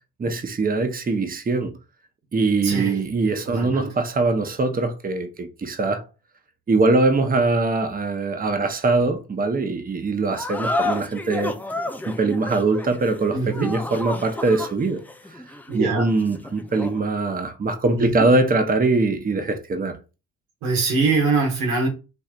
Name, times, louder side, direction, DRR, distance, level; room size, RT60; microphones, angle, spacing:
voice 1, 0.2-1.7 2.3-6.0 6.7-11.5 12.1-15.0 15.3-15.4 15.7-20.0, right 3 dB, 25° right, 0.8 m, -22 dB
voice 2, 2.6-3.1 3.4-3.9 13.3-13.7 15.7-16.1 17.9-18.2 20.6-21.9, right 4 dB, 80° right, 1.7 m, -23 dB
sound 1, 10.3-17.1, left 2 dB, 5° left, 0.5 m, -31 dB
4.3 x 3.2 x 2.4 m
supercardioid pair, 70°, 35 cm